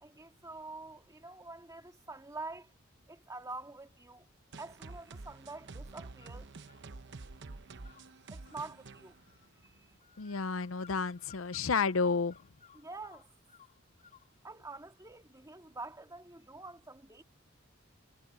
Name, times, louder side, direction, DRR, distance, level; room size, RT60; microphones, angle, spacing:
voice 1, 0.0-2.7 3.1-4.3 4.6-6.5 8.3-9.2 9.6-9.9 12.7-13.3 14.4-17.2, right 3 dB, 15° right, 2.3 m, -46 dB
sound 1, 4.5-10.0, right 3 dB, 60° right, 0.9 m, -49 dB
sound 2, 6.2-6.9 7.8-14.3, left 7 dB, 40° left, 3.0 m, -60 dB
voice 2, 10.2-12.4, left 5 dB, 80° left, 0.6 m, -31 dB
head